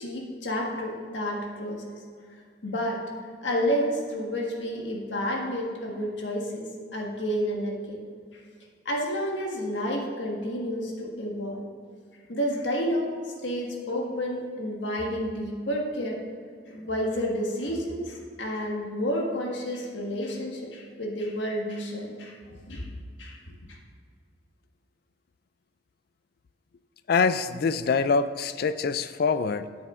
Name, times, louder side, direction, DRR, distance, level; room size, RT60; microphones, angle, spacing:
voice 1, 0.0-1.9 2.6-3.0 3.4-8.0 8.3-8.4 8.8-11.6 12.3-13.1 13.4-16.2 16.7-22.4 22.7-22.9 23.2-23.4 23.7-23.8, equal, 85° left, 0 dB, 1.5 m, -30 dB
voice 2, 27.1-29.7, left 5 dB, 55° left, 13 dB, 0.4 m, -25 dB
9.3 x 7.9 x 3.7 m, 2.1 s
head